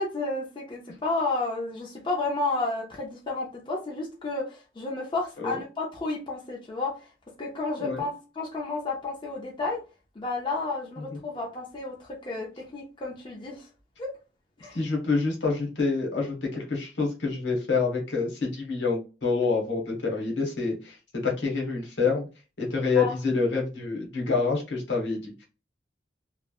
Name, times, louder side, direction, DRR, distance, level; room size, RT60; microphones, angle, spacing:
voice 1, 0.0-7.1 7.4-9.8 10.2-13.7 14.0-14.1 14.6-14.8 23.0-23.1, left 3 dB, 25° left, -1 dB, 0.5 m, -31 dB
voice 2, 14.7-22.3 22.6-25.5, left 4 dB, 80° left, 0 dB, 1.1 m, -27 dB
3.1 x 2.1 x 2.3 m, 0.31 s
head